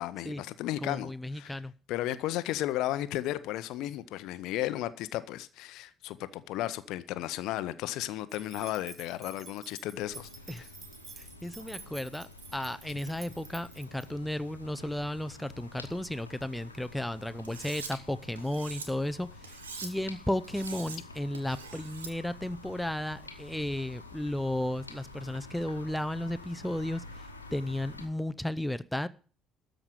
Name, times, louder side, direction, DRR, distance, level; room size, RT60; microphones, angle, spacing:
voice 1, 0.0-1.6 1.9-10.3 12.9-13.0, left 14 dB, 60° left, 0.7 m, -34 dB
voice 2, 0.8-1.7 10.5-10.7 11.2-29.1, left 1 dB, 5° left, 0.7 m, -34 dB
sound 1, 8.3-14.1, right 4 dB, 35° right, 1.6 m, -50 dB
sound 2, 10.0-28.1, left 2 dB, 90° left, 1.1 m, -49 dB
Cutlery silverware, 17.4-17.9 18.4-18.9 19.4-19.9 20.4-21.0 21.3-22.1, right 5 dB, 80° right, 1.3 m, -43 dB
13.0 x 5.1 x 9.1 m
figure-of-eight pair, 50°, 0 cm